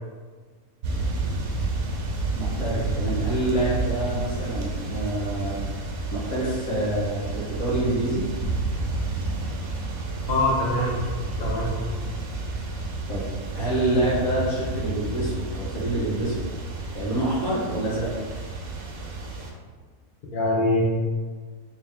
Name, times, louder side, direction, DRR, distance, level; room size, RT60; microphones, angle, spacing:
sound 1, 0.8-19.5, right 2 dB, 75° right, 1.1 m, -30 dB
voice 1, 2.3-5.6 6.1-8.2 13.1-13.3 13.5-16.4 16.9-18.1, right 1 dB, 80° left, -7 dB, 1.7 m, -26 dB
voice 2, 10.3-11.0 11.4-11.7 20.3-20.8, left 2 dB, 45° left, -2 dB, 0.7 m, -23 dB
3.4 x 2.8 x 3.5 m, 1.5 s
omnidirectional pair, 1.5 m